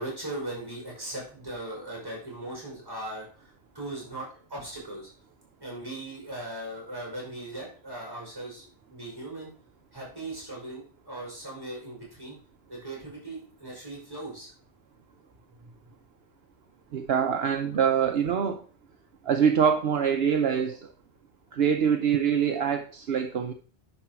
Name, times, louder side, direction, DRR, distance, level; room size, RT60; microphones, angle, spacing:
voice 1, 0.0-5.1 5.6-9.5 9.9-12.4 12.7-14.5 15.6-15.7, right 1 dB, 20° right, -3 dB, 5.3 m, -39 dB
voice 2, 16.9-18.6 19.3-20.8 21.5-23.5, right 7 dB, 70° right, 6 dB, 0.9 m, -24 dB
9.9 x 6.1 x 4.5 m, 0.42 s
omnidirectional pair, 1.1 m